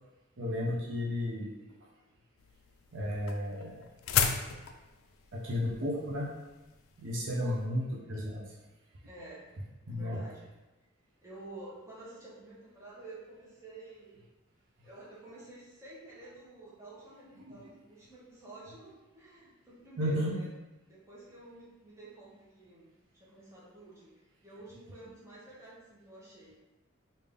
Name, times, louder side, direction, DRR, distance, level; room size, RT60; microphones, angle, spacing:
voice 1, 0.4-1.5 2.9-3.9 5.3-6.3 7.0-8.5 9.9-10.2 17.5-17.6 20.0-20.4, left 1 dB, 65° right, -4 dB, 0.6 m, -33 dB
sound 1, 2.4-7.6, left 7 dB, 80° left, 0.3 m, -34 dB
voice 2, 9.0-9.5 9.9-10.5 11.2-14.2 14.8-20.5 20.9-24.1 24.4-26.6, right 2 dB, 15° right, -8 dB, 1.0 m, -50 dB
3.4 x 2.7 x 3.4 m, 1.1 s
head